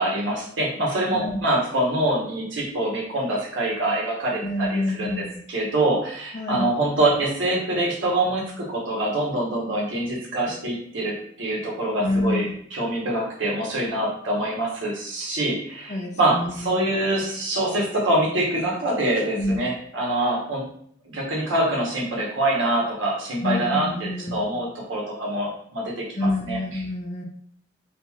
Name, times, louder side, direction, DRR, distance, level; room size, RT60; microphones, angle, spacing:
voice 1, 0.0-20.7 21.0-26.8, right 1 dB, 85° right, -3 dB, 1.0 m, -25 dB
voice 2, 4.4-5.4 6.3-6.7 12.0-12.6 15.9-16.8 19.4-19.7 23.4-24.4 26.2-27.2, left 1 dB, 35° left, 2 dB, 0.4 m, -27 dB
2.9 x 2.5 x 2.3 m, 0.62 s
head